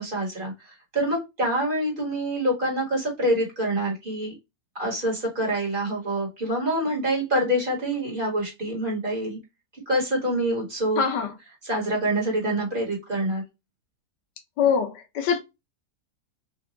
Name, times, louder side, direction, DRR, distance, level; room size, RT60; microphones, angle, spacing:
voice 1, 0.0-4.3 4.8-9.4 9.9-11.0 11.6-13.4, right 1 dB, 30° right, 1.6 m, -26 dB
voice 2, 11.0-11.3 14.6-15.4, left 7 dB, 90° left, 1.4 m, -23 dB
4.0 x 2.6 x 2.5 m
omnidirectional pair, 1.8 m